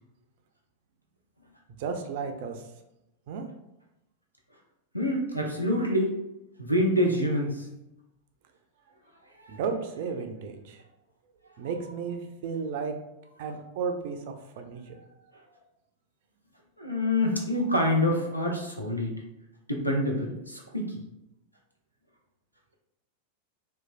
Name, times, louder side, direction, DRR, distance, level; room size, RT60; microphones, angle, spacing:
voice 1, 1.8-2.7 3.3-3.5 9.5-10.8 11.6-13.0 13.4-14.9, right 5 dB, 50° right, 5 dB, 0.4 m, -33 dB
voice 2, 4.9-6.2 6.6-7.7 9.4-9.6 16.8-19.2 19.7-21.0, left 1 dB, 90° left, 0 dB, 0.5 m, -26 dB
3.0 x 2.2 x 2.5 m, 0.90 s
figure-of-eight pair, 90°, 0 cm